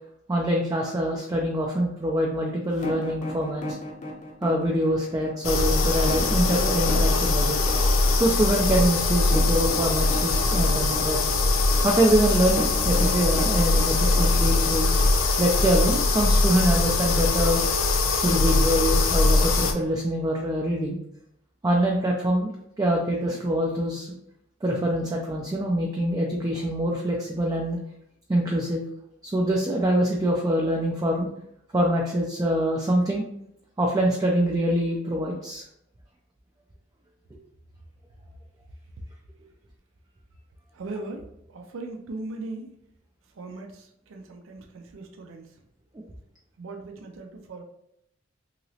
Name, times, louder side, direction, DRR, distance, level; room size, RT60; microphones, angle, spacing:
voice 1, 0.3-3.8 4.4-7.6 8.1-11.2 11.8-14.9 15.4-17.6 18.2-21.0 21.6-24.2 24.6-27.8 28.3-28.9 29.2-31.3 31.7-33.2 33.8-35.6, right 1 dB, 20° right, -1 dB, 0.3 m, -24 dB
sound 1, 2.7-15.6, left 1 dB, 40° left, 0.6 m, -35 dB
sound 2, 5.4-19.7, left 3 dB, 85° left, 0.5 m, -22 dB
voice 2, 40.7-41.2 41.5-42.7 43.4-45.5 46.6-47.6, right 2 dB, 85° right, 4 dB, 0.4 m, -38 dB
3.0 x 2.8 x 2.7 m, 0.77 s
head